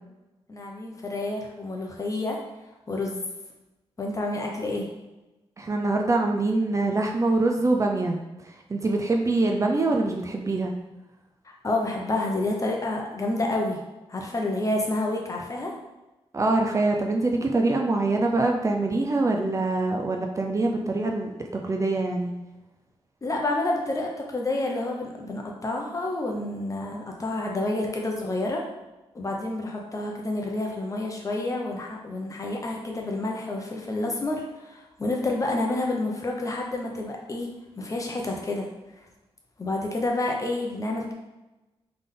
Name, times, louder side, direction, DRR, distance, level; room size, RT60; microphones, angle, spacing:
voice 1, 0.5-2.4 2.9-3.2 4.0-4.9 11.4-13.8 14.1-15.7 23.2-28.6 29.1-37.5 37.8-38.7 39.6-41.1, left 2 dB, 30° left, 0 dB, 0.9 m, -29 dB
voice 2, 5.6-8.2 8.4-10.7 16.3-22.3, right 2 dB, 30° right, 1 dB, 0.5 m, -24 dB
3.8 x 3.4 x 3.8 m, 1.0 s
cardioid pair, 90°, 10 cm